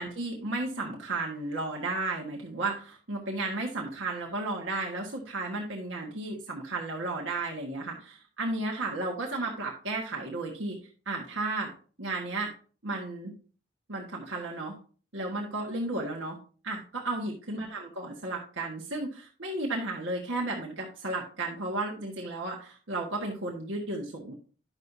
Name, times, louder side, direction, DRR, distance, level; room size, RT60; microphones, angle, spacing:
voice 1, 0.0-10.8 11.0-11.7 12.0-12.5 12.8-13.3 13.9-14.7 15.1-16.4 16.6-24.3, right 2 dB, 80° right, -1 dB, 1.5 m, -33 dB
10.5 x 6.4 x 2.7 m, 0.39 s
head